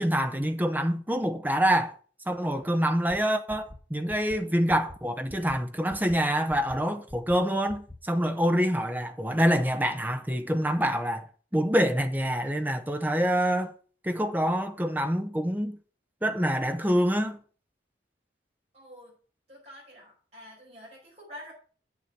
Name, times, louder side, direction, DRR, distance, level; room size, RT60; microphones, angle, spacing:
voice 1, 0.0-1.9 2.3-11.3 11.5-13.7 14.0-15.8 16.2-17.4, equal, 10° right, 0.9 m, -26 dB
sound 1, 3.1-3.2 3.5-3.8 4.1-4.4 4.7-5.0 5.3-5.6 5.9-6.2 6.5-6.8 7.1-7.4 7.7-8.0, left 1 dB, 20° left, 1.2 m, -44 dB
voice 2, 18.7-19.2 19.5-21.5, equal, 40° right, 5.3 m, -47 dB
8.3 x 7.1 x 6.0 m
head